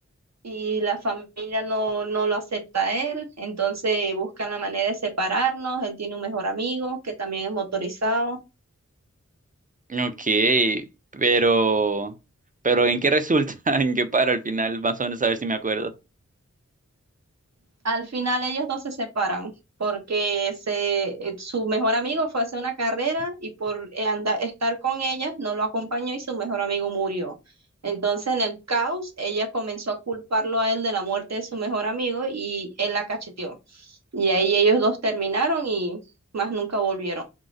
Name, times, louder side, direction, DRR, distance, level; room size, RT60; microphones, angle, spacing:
voice 1, 0.4-8.4 17.8-19.5 19.8-27.3 27.8-36.0 36.3-37.2, right 3 dB, 65° right, 0.8 m, -26 dB
voice 2, 9.9-10.8 11.1-12.1 12.6-15.9, right 3 dB, 30° right, 0.4 m, -22 dB
3.7 x 2.0 x 2.5 m
wide cardioid pair, 50°, 29 cm